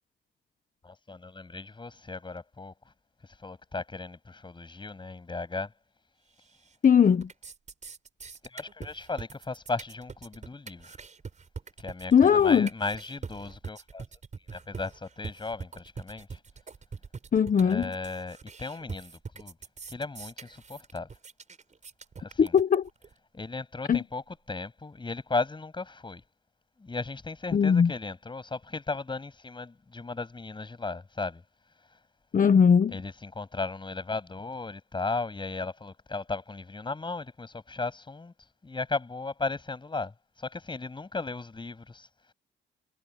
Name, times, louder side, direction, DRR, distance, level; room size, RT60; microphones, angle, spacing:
voice 1, 0.8-2.7 3.4-5.7 8.4-11.0 11.8-14.0 14.5-16.4 17.6-19.5 19.9-21.1 22.2-22.5 23.3-24.2 24.5-26.2 26.8-31.4 32.9-38.3 38.6-42.1, left 3 dB, 25° left, 7.9 m, -36 dB
sound 1, 6.4-6.9 7.1-23.1, right 5 dB, 35° right, 6.4 m, -43 dB
voice 2, 6.8-7.3 12.1-12.7 17.3-17.9 22.4-22.9 23.9-24.0 27.5-27.9 32.3-33.0, left 7 dB, 40° left, 1.4 m, -20 dB
cardioid pair, 90°, 20 cm